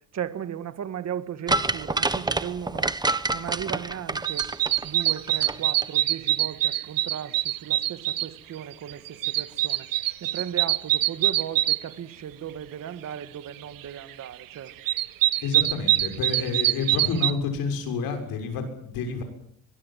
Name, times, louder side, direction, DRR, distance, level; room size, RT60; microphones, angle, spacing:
voice 1, 0.1-2.9 3.3-4.5 4.8-9.9 10.2-14.7, right 9 dB, 50° right, 12 dB, 1.9 m, -36 dB
sound 1, 1.5-5.6 5.8-5.9, right 2 dB, 10° right, 1.2 m, -27 dB
sound 2, 4.2-8.3 8.7-11.8 14.2-14.3 14.7-17.3, right 14 dB, 70° right, 1.1 m, -24 dB
voice 2, 15.4-19.2, left 5 dB, 85° left, 5 dB, 6.7 m, -29 dB
23.0 x 21.5 x 7.7 m, 0.64 s
cardioid pair, 130°, 35 cm